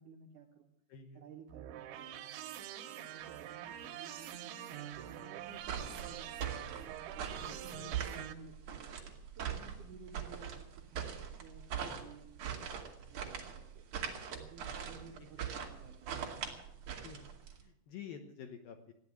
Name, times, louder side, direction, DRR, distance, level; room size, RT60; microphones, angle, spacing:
voice 1, 0.0-0.7 1.1-6.6 6.9-8.9 9.3-12.6 12.9-13.9 14.3-16.5, right 5 dB, 70° right, 1 dB, 2.0 m, -55 dB
voice 2, 0.9-1.3 7.4-8.1 15.4-15.5 17.0-17.3 17.6-18.9, left 7 dB, 70° left, 5 dB, 2.4 m, -50 dB
sound 1, 1.5-8.3, right 11 dB, 85° right, 3.4 m, -45 dB
sound 2, 5.6-17.6, right 8 dB, 50° right, 2.8 m, -41 dB
15.0 x 10.5 x 8.5 m, 0.74 s
omnidirectional pair, 5.3 m